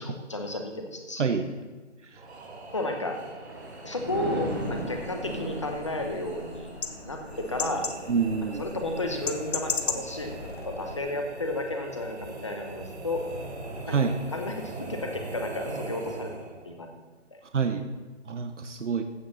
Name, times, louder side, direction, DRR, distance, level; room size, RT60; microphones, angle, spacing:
voice 1, 0.0-1.3 2.7-3.2 3.8-6.7 7.1-7.9 8.6-13.3 13.9-14.0 14.3-16.9 17.3-17.4, left 2 dB, 25° left, 4 dB, 1.0 m, -33 dB
sound 1, 2.1-16.7, right 2 dB, 60° right, 2.9 m, -41 dB
Thunder, 3.1-14.4 14.8-15.2, right 1 dB, 20° right, 1.2 m, -40 dB
sound 2, 4.5-11.0, left 5 dB, 60° left, 1.0 m, -37 dB
voice 2, 8.1-8.6 13.9-14.1 17.5-17.9 18.3-19.0, right 6 dB, 80° right, 6 dB, 1.1 m, -26 dB
15.0 x 8.2 x 4.2 m, 1.3 s
hypercardioid pair, 180°, 36 cm